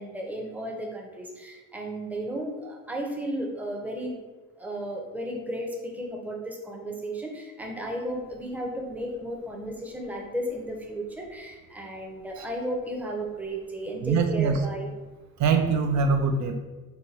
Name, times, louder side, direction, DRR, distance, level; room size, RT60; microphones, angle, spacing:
voice 1, 0.0-4.1 4.6-14.9, right 1 dB, 5° right, 0 dB, 0.6 m, -34 dB
voice 2, 14.0-14.6 15.4-16.6, right 5 dB, 70° right, 5 dB, 0.4 m, -23 dB
2.9 x 2.2 x 4.0 m, 1.2 s
cardioid pair, 90°, 30 cm